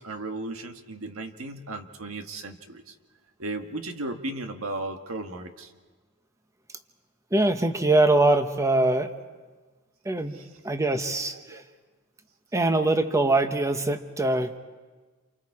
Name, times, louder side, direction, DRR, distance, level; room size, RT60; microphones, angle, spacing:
voice 1, 0.0-2.9 3.4-5.7 10.3-10.6 11.3-11.6, right 2 dB, 85° right, 5 dB, 1.6 m, -36 dB
voice 2, 7.3-9.1 10.0-10.4 10.6-11.6 12.5-14.5, right 2 dB, 15° right, 8 dB, 1.0 m, -23 dB
29.0 x 28.0 x 4.9 m, 1.3 s
head